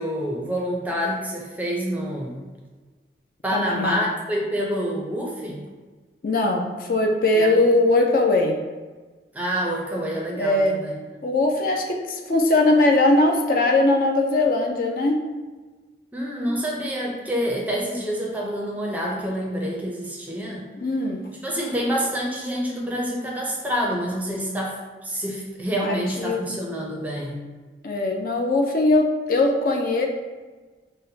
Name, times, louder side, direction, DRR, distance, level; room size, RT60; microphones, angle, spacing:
voice 1, 0.0-2.4 3.4-5.6 7.3-7.6 9.3-11.0 16.1-20.6 21.4-27.4, equal, 10° right, -3 dB, 0.5 m, -27 dB
voice 2, 3.5-4.0 6.2-8.6 10.4-10.8 11.2-15.2 20.8-21.2 25.8-26.4 27.8-30.1, left 2 dB, 50° left, 2 dB, 0.4 m, -20 dB
5.5 x 2.1 x 2.7 m, 1.3 s
head